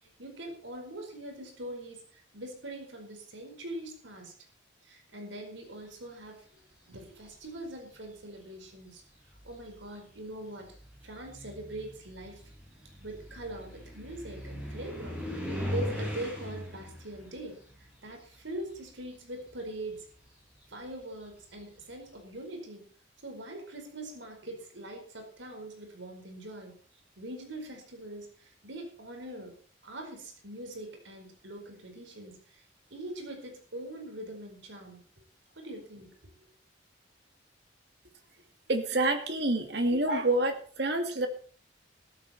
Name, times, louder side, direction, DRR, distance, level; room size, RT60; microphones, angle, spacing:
voice 1, 0.0-4.3 4.8-6.5 6.9-9.0 9.4-10.7 11.0-12.4 13.0-15.2 15.5-20.1 20.7-22.9 23.2-26.8 27.2-29.5 29.8-32.6 32.9-35.0 35.5-36.1, right 1 dB, 80° right, 4 dB, 4.8 m, -42 dB
sound 1, 6.9-7.5 8.5-8.6 9.1-19.0 19.3-22.0, equal, 5° right, 5.3 m, -40 dB
voice 2, 38.7-41.3, right 2 dB, 60° right, 5 dB, 2.6 m, -27 dB
14.0 x 14.0 x 4.4 m, 0.43 s
head